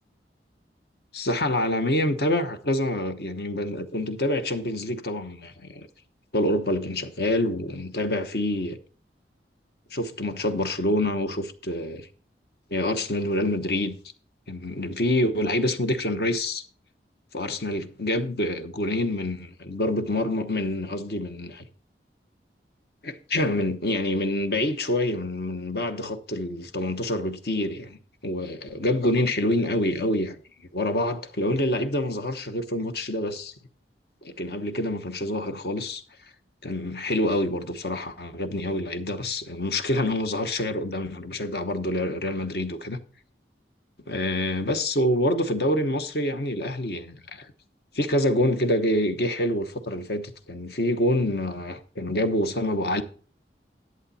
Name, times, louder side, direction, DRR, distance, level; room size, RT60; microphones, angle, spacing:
voice 1, 1.1-5.9 6.3-8.8 9.9-12.1 12.7-14.0 14.5-16.6 17.3-21.7 23.0-30.4 30.7-33.5 34.2-36.0 36.6-43.0 44.1-47.5 47.9-53.0, left 1 dB, 60° left, 1.0 m, -26 dB
11.0 x 8.0 x 4.1 m
head